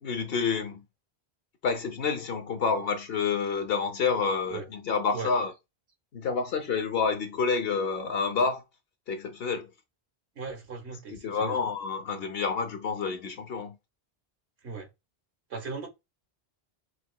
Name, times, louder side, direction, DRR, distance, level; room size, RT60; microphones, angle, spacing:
voice 1, 0.0-0.8 1.6-5.5 6.1-8.6 9.1-9.7 11.1-13.8, left 5 dB, 65° left, 1.0 m, -28 dB
voice 2, 10.3-11.6 14.6-14.9 15.5-15.9, right 5 dB, 90° right, 1.5 m, -37 dB
6.0 x 2.9 x 2.3 m
omnidirectional pair, 1.1 m